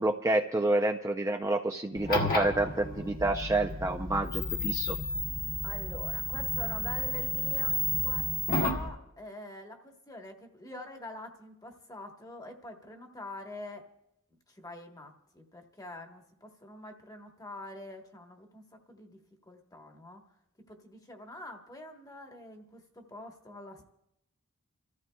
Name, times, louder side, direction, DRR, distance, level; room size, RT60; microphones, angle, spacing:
voice 1, 0.0-5.0, right 2 dB, 15° right, 4 dB, 0.4 m, -28 dB
sound 1, 2.0-8.9, left 1 dB, 45° left, 1.4 m, -32 dB
voice 2, 5.6-13.8 14.5-19.2 19.5-20.2 20.7-23.9, left 2 dB, 20° left, 3 dB, 1.2 m, -46 dB
30.0 x 14.0 x 2.3 m, 0.81 s
head